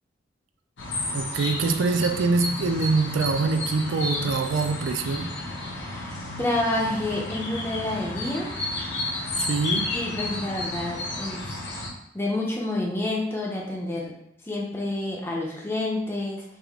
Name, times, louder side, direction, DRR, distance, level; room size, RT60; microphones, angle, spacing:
sound 1, 0.8-11.9, left 2 dB, 70° left, 0.8 m, -32 dB
voice 1, 1.1-5.3 9.4-9.9, right 4 dB, 85° right, 7 dB, 0.4 m, -24 dB
voice 2, 5.7-8.5 9.9-11.5 12.1-14.1 14.4-16.4, left 2 dB, 10° left, -2 dB, 0.5 m, -29 dB
3.5 x 2.4 x 3.5 m, 0.78 s
head